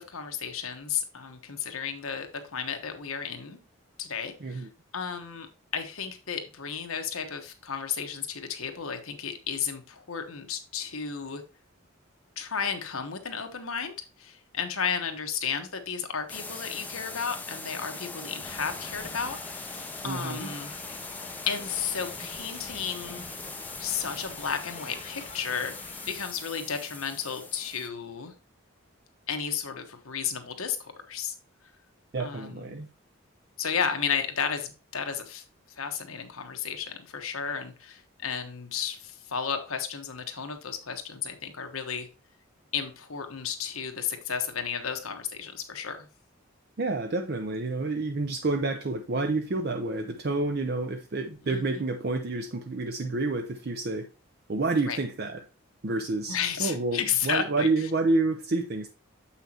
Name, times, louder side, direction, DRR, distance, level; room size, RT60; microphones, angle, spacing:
voice 1, 0.0-3.6 4.0-4.7 4.9-5.5 5.7-11.4 12.4-19.8 20.0-20.7 21.5-23.2 23.8-25.7 26.1-28.3 29.3-31.3 32.2-32.8 33.6-35.4 35.8-42.1 42.7-46.1 51.5-51.8 54.9-55.0 56.3-57.9, left 7 dB, 85° left, 1.2 m, -33 dB
sound 1, 16.3-27.9, left 3 dB, 10° left, 0.5 m, -41 dB
Thunder / Rain, 18.4-26.3, left 4 dB, 30° left, 1.0 m, -46 dB
voice 2, 20.0-20.5 32.1-32.9 46.8-54.1 54.5-55.4 55.8-58.9, right 3 dB, 50° right, 0.6 m, -29 dB
7.5 x 5.7 x 2.9 m
head